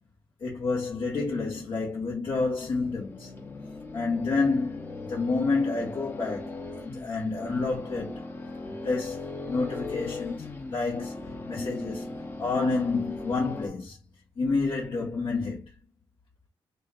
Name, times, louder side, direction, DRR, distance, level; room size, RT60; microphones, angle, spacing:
voice 1, 0.4-3.3 3.9-8.2 8.8-11.1 11.5-12.1 12.4-14.0 14.4-15.7, left 3 dB, 60° left, 2.1 m, -29 dB
sound 1, 2.7-13.7, left 2 dB, 25° left, 1.0 m, -38 dB
5.2 x 3.3 x 2.6 m
cardioid pair, 115°, 9 cm